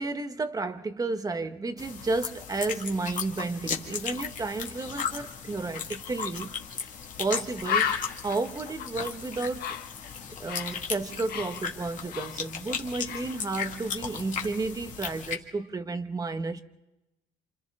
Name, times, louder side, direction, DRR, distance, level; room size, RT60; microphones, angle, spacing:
voice 1, 0.0-6.5 7.2-8.0 8.2-9.7 10.4-16.6, right 3 dB, 20° right, 1.2 m, -32 dB
sound 1, 1.8-15.3, left 6 dB, 50° left, 2.1 m, -36 dB
Bird, 6.8-6.9 7.2-7.3 7.6-10.8 11.1-12.8 13.1-13.4, left 8 dB, 65° left, 1.4 m, -33 dB
29.0 x 26.5 x 3.7 m
cardioid pair, 110°, 17 cm